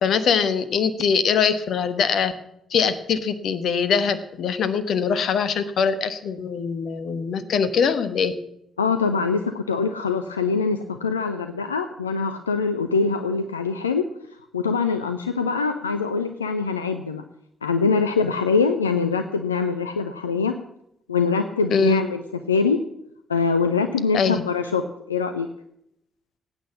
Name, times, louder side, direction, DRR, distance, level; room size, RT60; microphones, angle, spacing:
voice 1, 0.0-2.3 2.7-8.3 21.7-22.0 24.1-24.4, left 6 dB, 55° left, 13 dB, 1.2 m, -22 dB
voice 2, 8.8-14.0 14.5-17.2 17.6-20.5 21.1-22.2 22.5-22.8 23.3-24.8 25.1-25.5, left 4 dB, 85° left, 9 dB, 0.5 m, -23 dB
18.0 x 8.9 x 7.2 m, 0.76 s
figure-of-eight pair, 40°, 0 cm